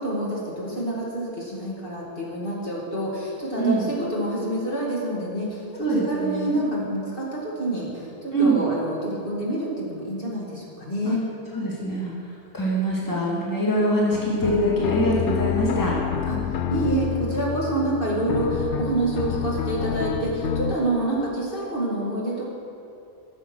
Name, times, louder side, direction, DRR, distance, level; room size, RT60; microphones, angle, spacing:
voice 1, 0.0-11.3 16.3-16.4 16.7-22.4, right 1 dB, 50° left, -5 dB, 2.5 m, -27 dB
voice 2, 3.6-3.9 5.8-6.6 8.3-8.6 11.0-11.1 11.5-15.9, right 1 dB, 15° left, -5 dB, 1.9 m, -24 dB
sound 1, 14.1-20.7, left 8 dB, 85° left, 0.9 m, -28 dB
14.5 x 6.6 x 6.2 m, 2.7 s
omnidirectional pair, 1.2 m